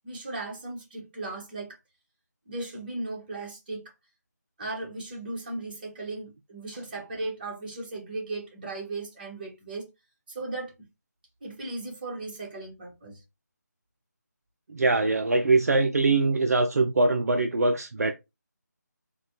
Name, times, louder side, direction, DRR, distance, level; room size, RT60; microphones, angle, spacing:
voice 1, 0.0-1.8 2.5-3.8 4.6-9.9 10.3-10.7 11.4-13.2, right 2 dB, 30° right, 1.3 m, -36 dB
voice 2, 14.7-18.1, right 3 dB, 60° right, 0.4 m, -23 dB
4.0 x 2.3 x 2.9 m
figure-of-eight pair, 160°, 10 cm